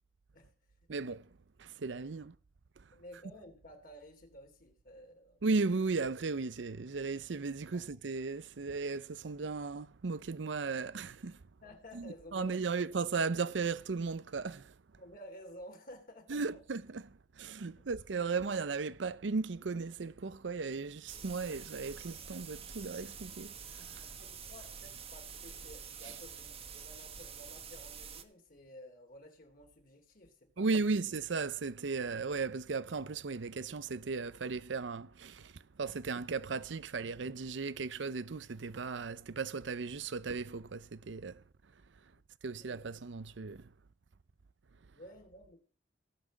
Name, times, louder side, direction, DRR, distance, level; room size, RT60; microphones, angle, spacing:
voice 1, 0.9-1.3 1.6-2.3 2.8-2.9 5.4-11.4 11.9-14.7 16.3-24.0 26.0-26.1 30.6-41.4 42.4-43.7, right 4 dB, 70° right, 0.6 m, -36 dB
voice 2, 2.9-5.4 7.7-7.8 11.6-12.6 15.0-16.6 17.7-17.9 24.0-30.8 42.5-42.9 44.9-45.6, equal, 50° left, 3.1 m, -53 dB
sound 1, 21.1-28.2, right 6 dB, 30° right, 1.2 m, -47 dB
18.0 x 6.1 x 7.4 m
head